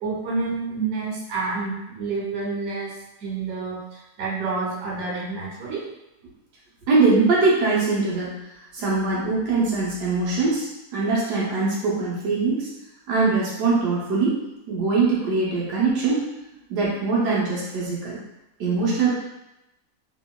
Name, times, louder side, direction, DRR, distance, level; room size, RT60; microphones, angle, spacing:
voice 1, 0.0-2.9 3.2-5.8, right 4 dB, 70° right, -4 dB, 1.3 m, -29 dB
voice 2, 6.9-8.3 8.7-12.7 13.1-14.4 14.7-16.2 16.7-18.2 18.6-19.1, right 3 dB, 90° right, -6 dB, 1.3 m, -22 dB
2.9 x 2.8 x 2.2 m, 0.93 s
omnidirectional pair, 1.7 m